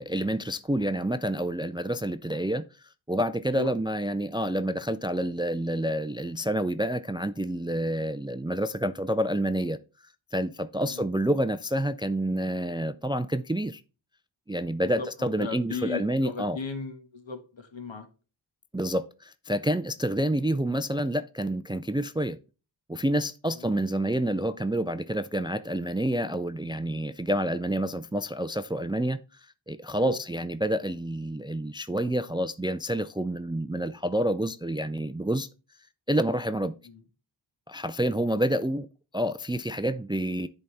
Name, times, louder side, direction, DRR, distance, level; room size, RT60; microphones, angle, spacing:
voice 1, 0.0-2.7 3.1-9.8 10.3-13.8 14.5-16.6 18.7-22.4 22.9-29.2 29.7-35.5 36.1-36.7 37.7-38.9 39.1-40.5, right 1 dB, 10° right, 0.3 m, -28 dB
voice 2, 14.8-18.1 23.6-23.7 29.9-30.2 36.8-37.0, left 4 dB, 75° left, 1.6 m, -37 dB
10.5 x 4.1 x 3.3 m
wide cardioid pair, 65°, 47 cm